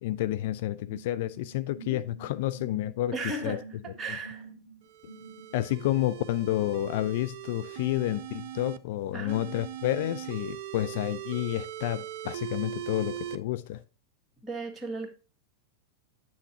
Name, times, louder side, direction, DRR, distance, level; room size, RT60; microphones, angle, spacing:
voice 1, 0.0-3.1 3.4-3.6 4.1-4.2 5.5-13.8, left 14 dB, 50° left, 0.4 m, -30 dB
sound 1, 0.9-5.7, right 4 dB, 80° left, 1.9 m, -48 dB
voice 2, 3.1-4.5 9.1-9.4 14.4-15.1, right 2 dB, 15° right, 1.9 m, -35 dB
sound 2, 4.8-8.8 9.3-13.4, right 11 dB, 50° right, 0.5 m, -40 dB
9.0 x 7.0 x 2.7 m
figure-of-eight pair, 90°, 0 cm